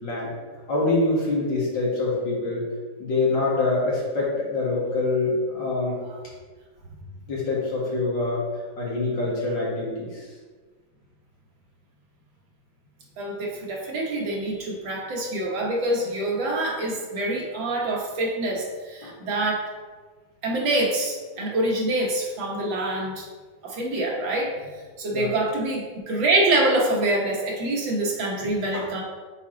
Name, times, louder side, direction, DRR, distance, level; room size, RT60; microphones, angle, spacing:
voice 1, 0.7-2.6 3.0-6.0 7.3-8.4 8.8-10.2 19.0-19.1 25.1-25.3 28.4-28.9, left 2 dB, 75° left, -6 dB, 2.6 m, -25 dB
voice 2, 13.2-19.6 20.4-23.3 23.6-24.5 25.0-29.0, right 2 dB, 80° right, -2 dB, 2.0 m, -25 dB
7.1 x 4.2 x 3.9 m, 1.4 s
omnidirectional pair, 2.0 m